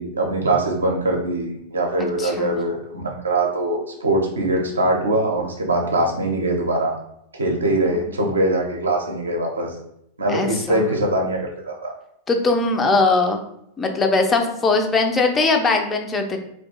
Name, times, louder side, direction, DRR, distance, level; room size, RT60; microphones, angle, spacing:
voice 1, 0.0-6.9 7.3-9.7 10.2-11.9, right 1 dB, 75° right, 1 dB, 0.5 m, -22 dB
voice 2, 2.2-2.6 7.9-8.0 10.3-10.8 12.3-13.4 13.8-16.4, left 3 dB, 20° left, 4 dB, 0.3 m, -20 dB
2.3 x 2.2 x 2.7 m, 0.75 s
figure-of-eight pair, 90°, 0 cm